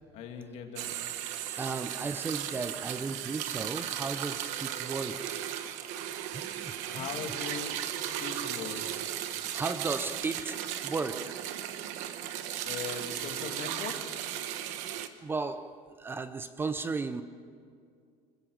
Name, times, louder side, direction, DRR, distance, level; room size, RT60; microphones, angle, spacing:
voice 1, 0.1-1.1 6.8-8.9 12.6-14.2, left 7 dB, 60° left, 2.5 m, -40 dB
sound 1, 0.8-15.1, right 11 dB, 70° right, 1.2 m, -36 dB
voice 2, 1.6-5.3 6.3-7.3 9.4-11.5 15.2-17.2, right 4 dB, 15° right, 0.6 m, -35 dB
26.5 x 15.5 x 6.4 m
cardioid pair, 150°, 13 cm